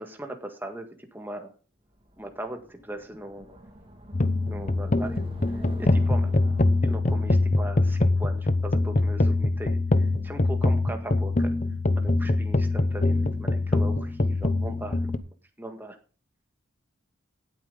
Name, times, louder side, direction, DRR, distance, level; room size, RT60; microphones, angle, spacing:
voice 1, 0.0-1.5 2.2-3.6 4.5-5.2 5.5-6.3 6.8-11.5 11.9-15.0 15.6-16.0, right 1 dB, 10° right, 4 dB, 1.8 m, -39 dB
sound 1, 1.9-9.0, equal, 25° right, 2.2 m, -48 dB
sound 2, 4.1-15.2, left 2 dB, 35° left, 0.7 m, -24 dB
16.5 x 8.6 x 3.9 m, 0.36 s
head